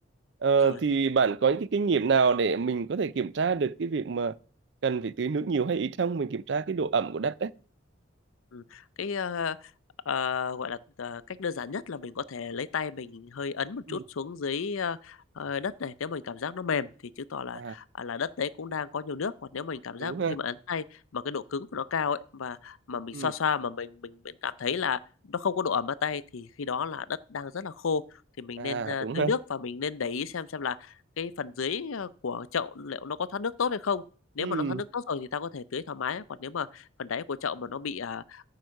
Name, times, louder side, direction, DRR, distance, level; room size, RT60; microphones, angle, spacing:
voice 1, 0.4-4.4 4.8-7.5 13.9-14.0 17.5-17.7 20.0-20.4 23.1-23.3 28.6-29.3 34.4-34.8, right 5 dB, 60° right, 0.5 m, -27 dB
voice 2, 8.5-9.7 10.1-16.9 17.2-25.0 25.3-34.0 34.3-38.4, left 6 dB, 90° left, 0.6 m, -32 dB
14.0 x 4.8 x 6.4 m
head